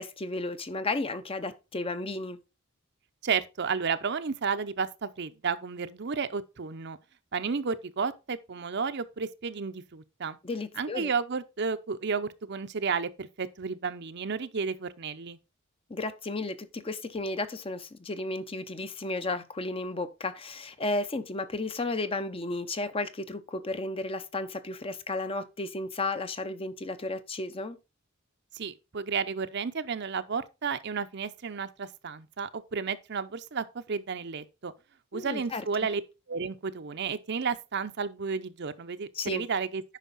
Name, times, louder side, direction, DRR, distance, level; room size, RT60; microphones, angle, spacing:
voice 1, 0.0-2.4 10.4-11.1 15.9-27.8 35.1-35.6 39.1-39.5, left 2 dB, 25° left, 0.7 m, -33 dB
voice 2, 3.2-7.0 7.3-10.4 10.8-15.4 28.5-34.7 35.1-36.0 36.3-39.8, right 5 dB, 55° right, 0.6 m, -32 dB
9.2 x 5.5 x 4.0 m
head